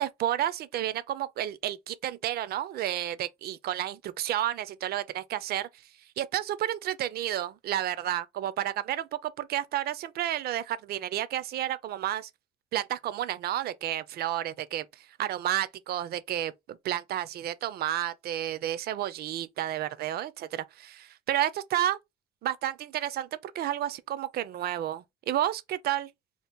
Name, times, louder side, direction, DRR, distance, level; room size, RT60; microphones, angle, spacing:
voice 1, 0.0-5.7 6.2-12.3 12.7-22.0 22.4-26.1, right 12 dB, 60° right, 0.4 m, -31 dB
2.8 x 2.4 x 3.5 m
cardioid pair, 130°, 18 cm